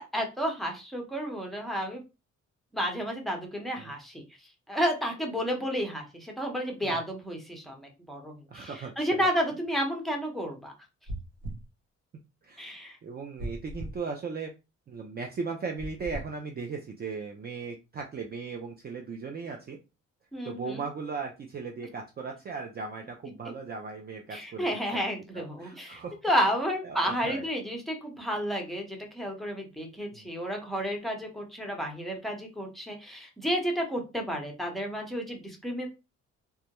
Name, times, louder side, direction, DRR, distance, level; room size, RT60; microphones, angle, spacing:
voice 1, 0.0-2.0 2.7-4.2 4.7-10.7 12.6-13.0 20.3-20.8 24.3-35.9, equal, ahead, 1 dB, 0.8 m, -31 dB
voice 2, 8.5-9.3 12.4-14.5 14.9-19.8 20.4-25.1 25.3-26.2 26.8-27.5 30.1-30.3, right 4 dB, 35° right, 2 dB, 0.4 m, -38 dB
sound 1, 11.1-11.7 13.4-14.0 15.8-16.3, right 1 dB, 70° right, 0.8 m, -37 dB
2.3 x 2.0 x 2.9 m, 0.27 s
cardioid pair, 90°, 30 cm